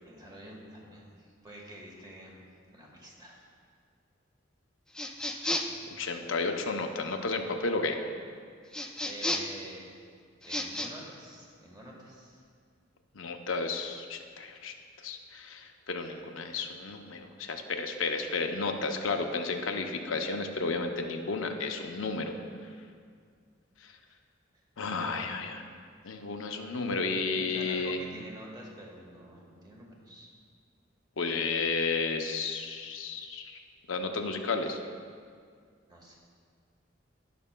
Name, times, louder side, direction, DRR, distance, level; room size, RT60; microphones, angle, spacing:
voice 1, 0.0-3.5 9.0-9.8 10.4-12.4 24.8-25.3 27.4-30.3 35.9-36.2, right 1 dB, 20° right, -2 dB, 1.3 m, -48 dB
sound 1, 4.9-5.8 8.7-9.6 10.4-10.9, left 1 dB, 5° left, 0.4 m, -32 dB
voice 2, 5.9-8.0 13.1-14.7 15.0-22.3 24.8-25.6 26.0-28.0 31.2-33.6 33.9-34.8, left 4 dB, 90° left, 4 dB, 0.7 m, -32 dB
16.5 x 5.9 x 2.2 m, 2.1 s
head